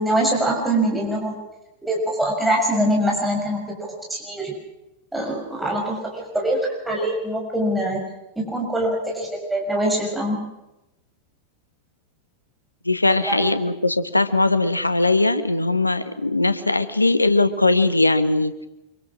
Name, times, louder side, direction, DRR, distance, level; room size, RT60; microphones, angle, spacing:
voice 1, 0.0-1.4 1.8-3.7 4.1-4.5 5.1-6.6 6.8-8.0 8.3-10.4 13.2-13.5, right 1 dB, 5° right, -2 dB, 6.5 m, -23 dB
voice 2, 12.8-18.5, left 2 dB, 85° left, 12 dB, 1.3 m, -20 dB
26.0 x 23.5 x 6.1 m, 0.95 s
figure-of-eight pair, 90°, 0 cm